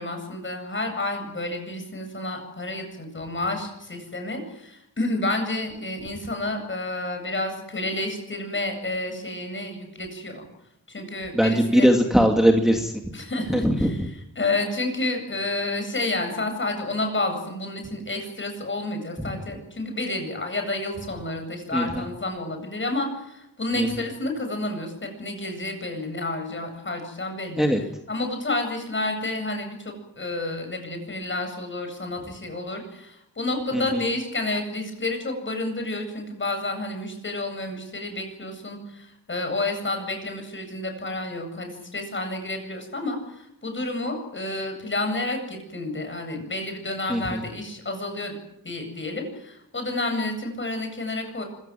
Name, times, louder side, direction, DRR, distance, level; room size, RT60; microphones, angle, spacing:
voice 1, 0.0-10.4 10.9-11.9 13.1-14.1 14.4-27.7 28.1-48.4 48.6-51.4, left 2 dB, 35° left, 5 dB, 8.0 m, -30 dB
voice 2, 11.3-12.9 13.5-14.1 19.2-19.3 21.7-22.0 23.7-24.0 27.6-27.8 33.7-34.0 47.1-47.4, equal, ahead, 2 dB, 2.5 m, -21 dB
25.0 x 16.5 x 9.3 m, 0.83 s
wide cardioid pair, 105°, 34 cm